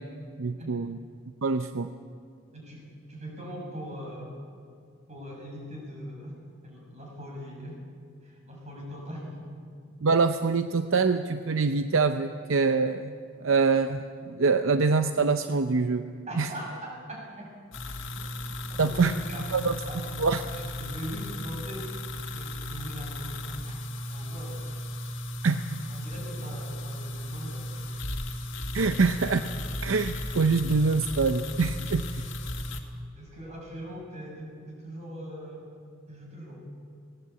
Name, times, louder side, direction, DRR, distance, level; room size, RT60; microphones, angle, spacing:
voice 1, 0.4-1.0 1.4-1.9 10.0-13.1 13.4-16.1 16.4-16.5 18.8-19.1 19.5-19.7 20.2-20.4 25.4-25.8 28.7-29.5 29.8-32.3, right 4 dB, 65° right, 9 dB, 0.6 m, -25 dB
voice 2, 2.5-4.3 5.1-7.8 8.2-9.7 16.3-17.5 18.1-19.5 19.9-20.2 20.5-23.8 24.1-24.7 25.9-28.1 33.2-35.7 36.1-36.7, equal, 35° right, -1 dB, 7.2 m, -41 dB
sound 1, 17.7-32.8, left 1 dB, 65° left, 2.1 m, -35 dB
20.5 x 18.0 x 8.3 m, 2.2 s
head